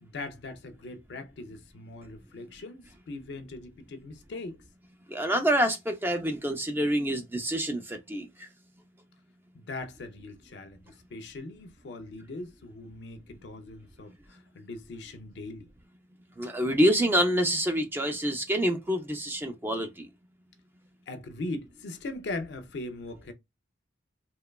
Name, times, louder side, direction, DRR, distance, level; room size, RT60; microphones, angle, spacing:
voice 1, 0.0-4.6 9.5-15.7 21.1-23.3, left 2 dB, 65° left, 0.4 m, -40 dB
voice 2, 5.1-8.5 16.4-20.1, equal, 10° right, 0.3 m, -27 dB
2.8 x 2.2 x 2.2 m
head